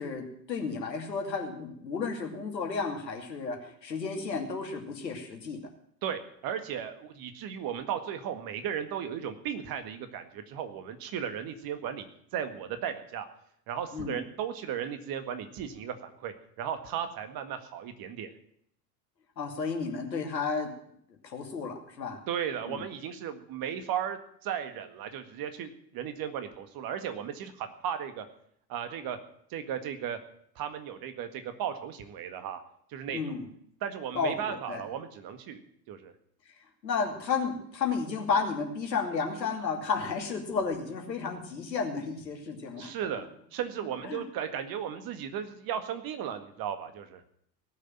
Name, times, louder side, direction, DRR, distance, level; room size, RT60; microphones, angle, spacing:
voice 1, 0.0-5.7 13.9-14.2 19.4-20.7 21.2-22.2 22.7-22.8 33.1-33.5 34.1-34.8 36.8-42.9 44.0-44.2, left 5 dB, 80° left, 3 dB, 2.8 m, -32 dB
voice 2, 6.0-12.0 12.3-13.3 13.7-18.3 22.3-28.3 28.7-29.2 29.5-30.2 30.6-32.6 32.9-33.3 33.8-35.6 35.9-36.1 42.8-47.2, right 8 dB, 45° right, 9 dB, 1.9 m, -35 dB
18.0 x 6.8 x 9.1 m, 0.68 s
figure-of-eight pair, 80°, 50 cm